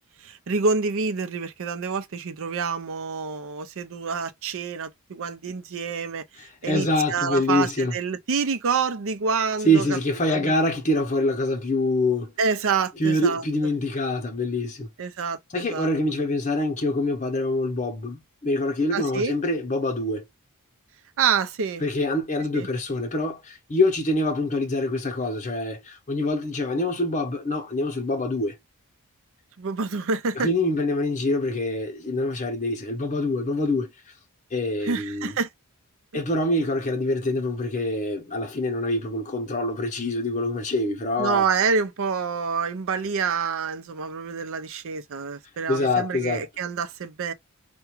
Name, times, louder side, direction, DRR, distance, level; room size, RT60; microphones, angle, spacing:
voice 1, 0.2-6.2 6.6-10.0 10.3-10.5 12.4-13.4 15.0-15.9 18.9-19.3 21.2-21.8 22.6-22.7 29.6-30.5 34.8-35.5 41.2-47.3, right 5 dB, 65° right, 0.5 m, -27 dB
voice 2, 6.4-7.9 9.6-12.3 13.0-14.9 15.5-20.2 21.8-28.6 30.3-34.1 34.5-35.4 36.1-41.4 45.7-46.5, left 1 dB, 35° left, 0.8 m, -25 dB
4.8 x 2.2 x 3.0 m
head